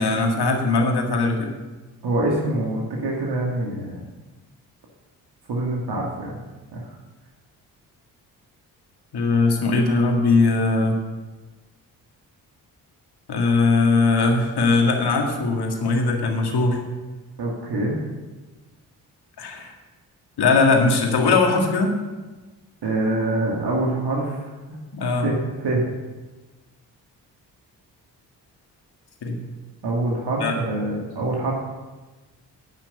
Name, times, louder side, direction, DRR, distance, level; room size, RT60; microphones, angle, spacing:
voice 1, 0.0-1.5 9.1-11.0 13.3-16.8 19.4-19.7 20.4-22.0 24.9-25.3 29.2-29.4 30.4-30.5, left 3 dB, 60° left, 2 dB, 2.0 m, -20 dB
voice 2, 2.0-4.0 5.5-6.4 6.7-6.8 17.4-18.0 22.8-24.4 24.7-24.8 25.2-25.8 29.8-31.5, right 2 dB, 60° right, -2 dB, 2.2 m, -25 dB
9.7 x 5.9 x 7.9 m, 1.2 s
hypercardioid pair, 40°, 45 cm